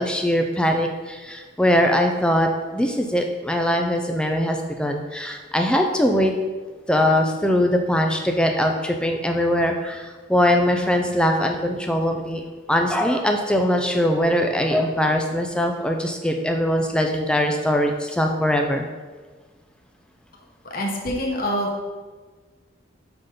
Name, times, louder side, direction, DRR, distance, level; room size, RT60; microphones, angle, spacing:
voice 1, 0.0-6.4 6.9-12.4 12.7-18.8, equal, 5° left, 3 dB, 0.4 m, -21 dB
voice 2, 20.6-21.9, equal, 50° left, 0 dB, 1.0 m, -26 dB
5.8 x 3.8 x 5.1 m, 1.4 s
head